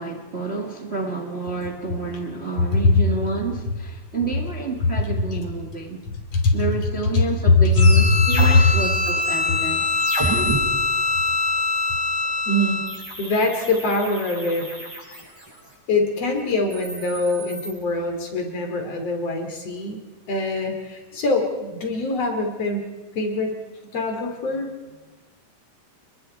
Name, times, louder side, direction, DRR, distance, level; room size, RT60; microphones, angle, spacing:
voice 1, 0.0-6.0 6.5-9.8, right 3 dB, 25° right, 2 dB, 1.4 m, -29 dB
voice 2, 7.1-8.1 8.5-8.7 12.5-12.8 13.2-14.7 15.9-20.0 20.3-22.9 23.1-23.6 23.9-24.7, left 3 dB, 50° left, 4 dB, 3.8 m, -21 dB
sound 1, 7.7-10.6 12.9-15.7 16.5-17.7, right 1 dB, 5° right, 7.3 m, -32 dB
Bowed string instrument, 7.8-13.0, left 3 dB, 85° left, 3.5 m, -24 dB
30.0 x 21.5 x 4.5 m, 1.2 s
omnidirectional pair, 3.6 m